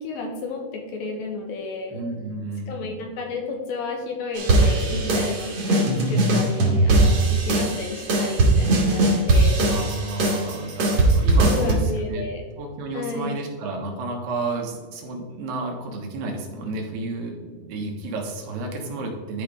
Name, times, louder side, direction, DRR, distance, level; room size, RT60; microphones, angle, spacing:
voice 1, 0.0-2.0 2.7-5.8 6.1-9.9 11.4-12.4 12.9-13.4, left 3 dB, 75° left, 2 dB, 2.4 m, -32 dB
voice 2, 1.9-2.9 4.9-5.3 9.6-12.3 12.6-19.4, right 2 dB, 80° right, 1 dB, 3.3 m, -31 dB
sound 1, 4.4-11.7, right 2 dB, 50° right, 1.8 m, -20 dB
12.5 x 4.8 x 3.4 m, 1.5 s
omnidirectional pair, 4.8 m